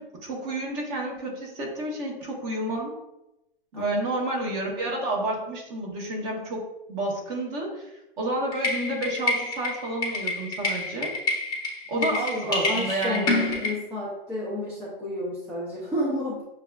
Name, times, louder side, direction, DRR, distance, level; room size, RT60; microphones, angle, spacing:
voice 1, 0.0-2.9 3.7-7.9 8.2-11.1 11.9-13.5, right 1 dB, 30° right, -2 dB, 1.2 m, -30 dB
sound 1, 8.5-13.7, left 3 dB, 15° left, 0.7 m, -28 dB
voice 2, 11.9-16.4, left 1 dB, 5° right, -8 dB, 0.4 m, -31 dB
6.6 x 2.3 x 2.4 m, 0.91 s
hypercardioid pair, 145°, 29 cm